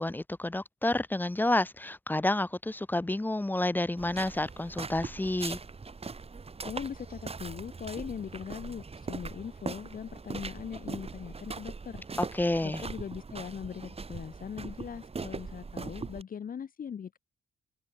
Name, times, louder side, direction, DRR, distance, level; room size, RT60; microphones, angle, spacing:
voice 1, 0.0-5.6 12.2-12.8, left 1 dB, 10° left, 0.7 m, -29 dB
sound 1, 4.0-16.2, right 4 dB, 30° right, 2.5 m, -40 dB
voice 2, 6.6-12.0 12.6-17.2, left 7 dB, 50° left, 1.2 m, -40 dB
supercardioid pair, 55°, 19 cm